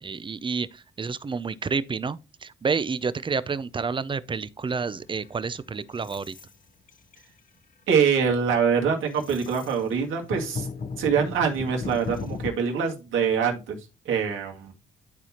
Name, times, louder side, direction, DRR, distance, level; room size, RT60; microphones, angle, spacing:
voice 1, 0.0-6.3, right 5 dB, 25° right, 0.5 m, -29 dB
sound 1, 5.0-6.5 6.9-7.4 7.9-8.1 8.5-12.5, left 5 dB, 45° left, 0.8 m, -37 dB
voice 2, 7.9-10.7 11.0-13.8 14.1-14.7, right 6 dB, 80° right, 2.0 m, -24 dB
12.0 x 4.2 x 2.9 m
cardioid pair, 90°, 20 cm